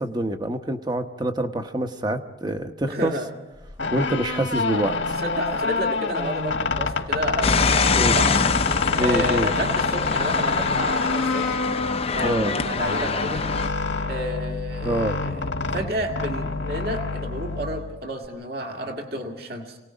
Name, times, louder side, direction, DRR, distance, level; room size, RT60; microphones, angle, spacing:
voice 1, 0.0-3.1 3.9-5.1 7.9-8.2 9.0-9.5 12.2-12.5 14.8-15.2, right 1 dB, 20° right, 7 dB, 1.0 m, -26 dB
voice 2, 2.9-3.3 3.8-3.9 5.2-8.4 9.0-11.6 12.1-13.4 14.1-19.8, equal, 55° right, 2 dB, 2.1 m, -31 dB
sound 1, 3.6-18.3, left 4 dB, 80° left, 1.5 m, -26 dB
sound 2, 7.4-13.7, left 5 dB, 30° left, 0.6 m, -25 dB
28.0 x 18.0 x 5.1 m, 1.1 s
head